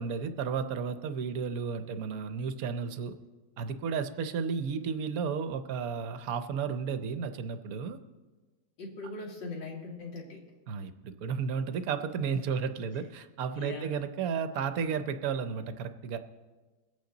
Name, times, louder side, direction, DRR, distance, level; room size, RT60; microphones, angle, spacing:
voice 1, 0.0-3.1 3.6-8.0 10.7-16.2, right 6 dB, 65° right, 10 dB, 1.0 m, -33 dB
voice 2, 8.8-10.4 12.5-12.6 12.9-13.0 13.6-14.0, left 2 dB, 75° left, -1 dB, 2.8 m, -41 dB
22.0 x 8.5 x 3.9 m, 1.3 s
omnidirectional pair, 2.0 m